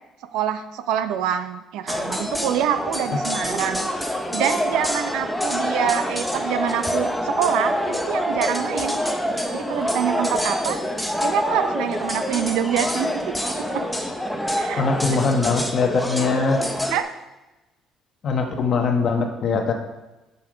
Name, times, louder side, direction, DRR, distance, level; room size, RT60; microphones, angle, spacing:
voice 1, 0.3-3.9 4.3-9.0 9.5-10.8 11.2-13.8 14.6-15.2 16.9-17.1, right 9 dB, 85° right, 10 dB, 0.6 m, -26 dB
sound 1, 1.9-17.0, equal, ahead, 0.7 m, -26 dB
voice 2, 14.7-16.6 18.2-19.7, left 4 dB, 40° left, 4 dB, 1.1 m, -22 dB
7.0 x 6.9 x 5.1 m, 1.0 s
cardioid pair, 155°, 0 cm